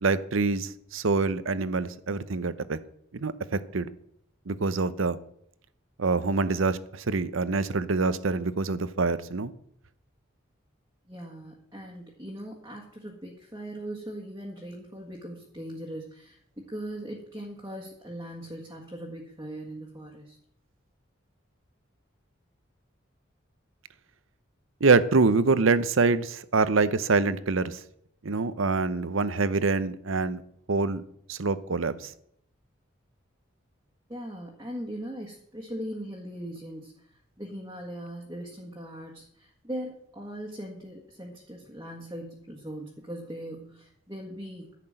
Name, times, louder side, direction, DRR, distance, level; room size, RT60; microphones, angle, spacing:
voice 1, 0.0-2.8 3.1-3.9 4.5-5.2 6.0-9.5 24.8-27.8 28.2-30.4 30.7-31.0 31.3-32.1, right 3 dB, 80° right, 15 dB, 0.8 m, -25 dB
voice 2, 11.1-20.4 34.1-44.8, right 1 dB, 15° right, -3 dB, 1.7 m, -40 dB
11.0 x 6.0 x 8.8 m, 0.72 s
head